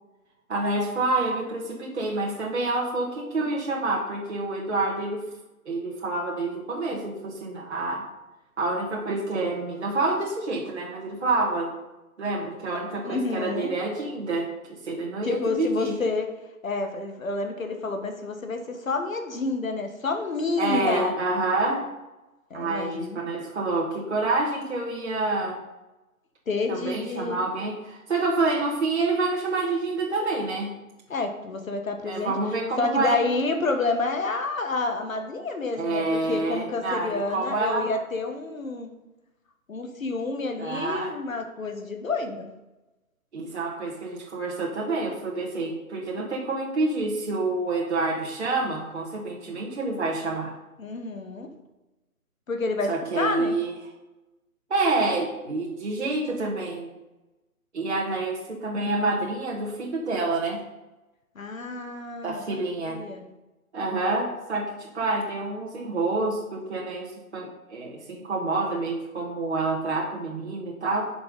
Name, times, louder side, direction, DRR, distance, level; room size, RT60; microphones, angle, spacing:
voice 1, 0.5-5.2 5.7-8.0 8.6-11.7 12.2-14.5 14.8-16.0 20.6-21.9 22.5-25.6 26.7-30.7 32.0-33.2 35.8-37.9 40.6-41.2 43.3-50.5 52.9-53.7 54.7-56.9 57.7-60.6 62.2-63.0 63.7-71.1, right 2 dB, 50° right, -3 dB, 1.9 m, -28 dB
voice 2, 13.0-13.7 15.2-16.3 16.6-21.1 22.5-23.2 26.5-27.4 31.1-32.3 32.8-38.9 39.7-42.5 50.8-51.5 52.5-53.6 61.3-62.4 62.8-63.2, left 3 dB, 65° left, 5 dB, 1.5 m, -29 dB
8.7 x 6.1 x 5.4 m, 1.0 s
hypercardioid pair, 180°, 44 cm